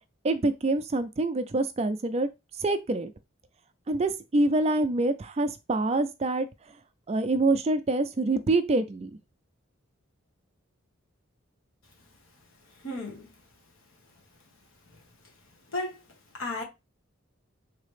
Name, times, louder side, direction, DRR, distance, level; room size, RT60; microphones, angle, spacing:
voice 1, 0.2-2.3 2.6-3.1 3.9-6.5 7.1-9.1, right 2 dB, 30° right, 0.4 m, -26 dB
voice 2, 12.8-13.3 15.7-16.0 16.3-16.6, left 2 dB, 80° left, 1.3 m, -33 dB
4.0 x 2.8 x 3.2 m
head